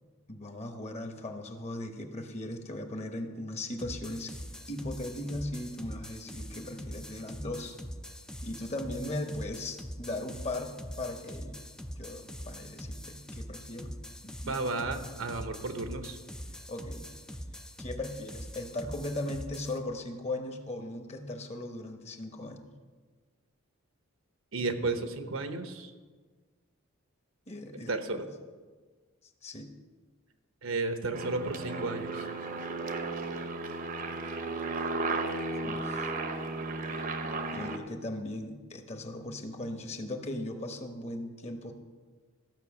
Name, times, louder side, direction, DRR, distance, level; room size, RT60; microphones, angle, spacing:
voice 1, 0.3-4.3 4.7-7.8 8.4-11.6 12.0-13.9 14.2-14.6 16.7-17.1 17.8-22.7 27.5-28.3 29.4-29.7 35.6-36.1 37.5-41.7, left 1 dB, 30° left, 5 dB, 1.0 m, -38 dB
sound 1, 3.8-19.8, equal, 5° left, 0.4 m, -43 dB
voice 2, 14.5-16.2 24.5-25.9 27.9-28.2 30.6-32.2, right 3 dB, 75° right, 8 dB, 1.0 m, -33 dB
Aircraft, 31.1-37.8, right 3 dB, 40° right, 0.7 m, -34 dB
14.0 x 5.7 x 7.1 m, 1.4 s
head